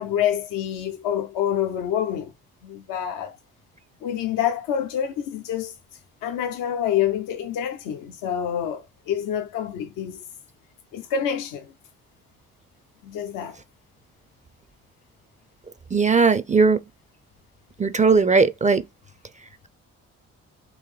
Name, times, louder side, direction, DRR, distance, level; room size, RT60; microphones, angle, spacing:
voice 1, 0.0-2.3 2.6-3.4 4.0-5.7 6.2-10.2 10.9-11.6 13.0-13.6, left 9 dB, 75° left, 0.6 m, -27 dB
voice 2, 15.9-16.8 17.8-18.8, right 4 dB, 25° right, 0.4 m, -18 dB
3.9 x 2.6 x 3.2 m
supercardioid pair, 60°, 33 cm